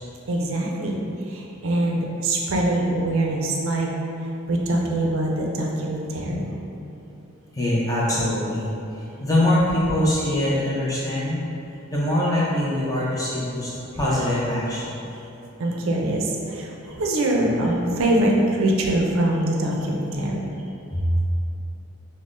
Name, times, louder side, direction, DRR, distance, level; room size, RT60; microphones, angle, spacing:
voice 1, 0.3-1.0 1.3-3.9 4.5-6.4 15.6-20.4, right 1 dB, 65° right, -1 dB, 0.4 m, -23 dB
voice 2, 7.5-11.4 11.9-15.0 20.9-21.2, left 1 dB, 15° left, -7 dB, 0.5 m, -23 dB
5.3 x 2.1 x 2.5 m, 2.8 s
head